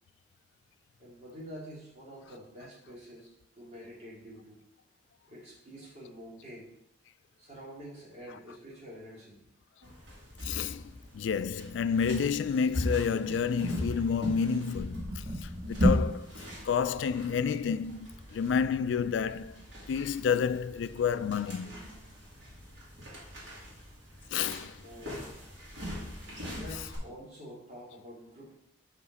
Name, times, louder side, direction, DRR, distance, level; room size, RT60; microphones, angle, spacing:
voice 1, 1.0-4.6 5.3-6.7 7.4-9.4 24.8-25.2 26.5-28.5, equal, 35° right, 2.4 m, -47 dB
sound 1, 9.8-27.0, equal, 85° right, 2.3 m, -37 dB
voice 2, 10.4-10.8 11.1-19.6 19.9-21.7 24.3-24.8, left 6 dB, 75° left, 0.3 m, -30 dB
5.8 x 5.0 x 4.1 m
head